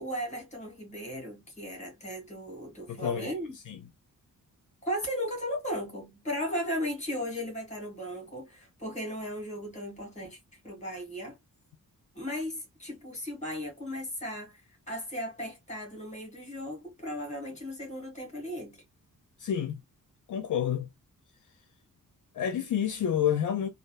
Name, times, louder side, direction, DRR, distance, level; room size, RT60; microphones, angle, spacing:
voice 1, 0.0-3.5 4.8-11.4 12.1-18.8, equal, 20° left, 1.9 m, -36 dB
voice 2, 2.9-3.3 3.7-3.8 19.4-19.8 20.3-20.9 22.3-23.7, left 9 dB, 60° left, 0.5 m, -29 dB
3.3 x 2.4 x 2.3 m
wide cardioid pair, 170°, 34 cm